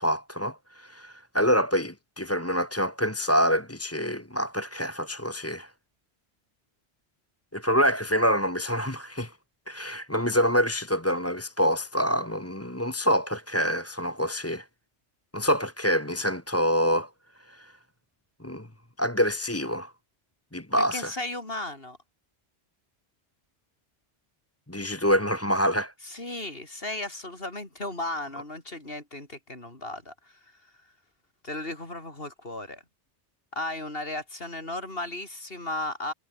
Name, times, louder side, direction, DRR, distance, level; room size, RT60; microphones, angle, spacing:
voice 1, 0.0-5.7 7.5-9.3 9.7-14.6 15.3-17.1 17.5-17.7 18.4-18.7 19.0-19.9 20.5-21.1 24.7-25.9, equal, 10° left, 1.7 m, -26 dB
voice 2, 20.8-22.0 26.0-30.7 31.4-32.8 33.5-36.1, left 2 dB, 55° left, 5.4 m, -35 dB
omnidirectional pair, 1.2 m